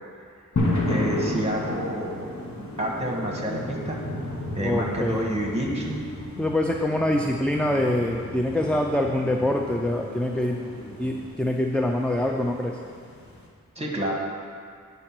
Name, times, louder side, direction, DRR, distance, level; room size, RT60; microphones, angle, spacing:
sound 1, 0.6-13.5, left 1 dB, 55° left, 1.3 m, -33 dB
voice 1, 0.9-2.3 2.6-4.0 4.5-6.0 13.7-14.1, right 1 dB, 20° right, -1 dB, 1.5 m, -29 dB
sound 2, 1.1-11.3, left 2 dB, 40° left, 2.0 m, -44 dB
voice 2, 4.6-5.4 6.4-10.7 11.0-12.8, left 1 dB, 5° left, 1 dB, 0.4 m, -25 dB
9.0 x 4.1 x 6.0 m, 2.2 s
wide cardioid pair, 50°, 33 cm